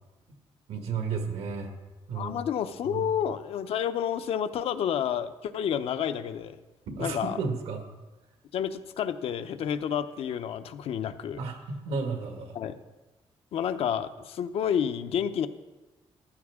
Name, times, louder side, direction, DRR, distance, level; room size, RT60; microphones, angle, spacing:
voice 1, 0.7-1.7 2.1-2.3 2.9-3.0 6.9-7.8 11.4-12.6, right 5 dB, 85° right, 5 dB, 1.8 m, -33 dB
voice 2, 2.1-6.6 7.0-7.4 8.5-11.4 12.5-12.8 13.5-15.5, left 8 dB, 75° left, 10 dB, 0.7 m, -30 dB
14.5 x 12.0 x 3.6 m, 1.2 s
cardioid pair, 110°, 10 cm